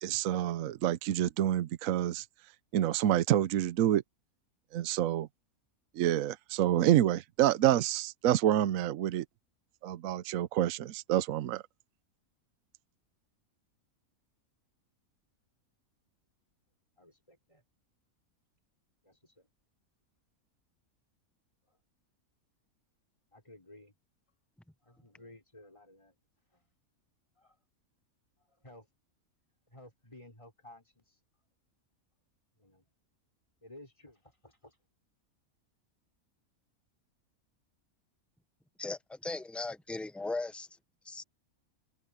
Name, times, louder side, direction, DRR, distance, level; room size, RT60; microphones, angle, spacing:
voice 1, 0.0-2.2 2.7-4.0 4.7-5.3 6.0-9.2 9.8-11.6, right 12 dB, 70° right, 1.0 m, -28 dB
voice 2, 17.0-17.6 19.0-19.5 21.7-21.8 23.3-23.9 24.8-26.2 26.5-26.6 27.4-27.6 28.6-28.9 29.7-31.2 32.6-32.8 33.6-34.8, left 1 dB, 20° left, 5.4 m, -55 dB
voice 3, 38.8-40.7 41.0-41.2, left 3 dB, ahead, 0.5 m, -37 dB
omnidirectional pair, 1.5 m